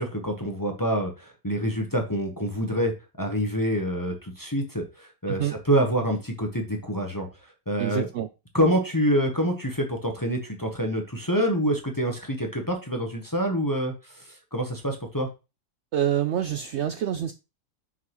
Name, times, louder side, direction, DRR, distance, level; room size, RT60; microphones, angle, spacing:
voice 1, 0.0-2.9 3.2-7.3 7.7-8.1 8.5-15.3, equal, 15° left, 0.8 m, -26 dB
voice 2, 5.3-5.6 7.8-8.3 15.9-17.3, right 10 dB, 80° right, 0.6 m, -27 dB
6.0 x 5.7 x 3.0 m
omnidirectional pair, 1.7 m